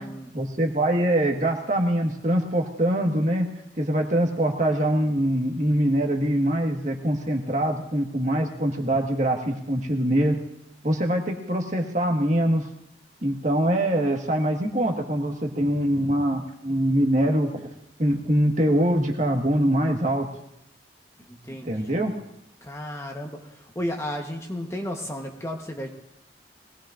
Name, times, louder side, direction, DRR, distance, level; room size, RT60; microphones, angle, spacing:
voice 1, 0.3-3.4 3.8-10.4 10.8-12.6 13.2-17.6 18.0-20.2 21.6-22.1, right 1 dB, 40° right, 2 dB, 1.6 m, -23 dB
voice 2, 21.2-22.1 22.6-25.9, equal, 15° left, 2 dB, 1.1 m, -34 dB
21.5 x 17.5 x 2.6 m, 0.83 s
head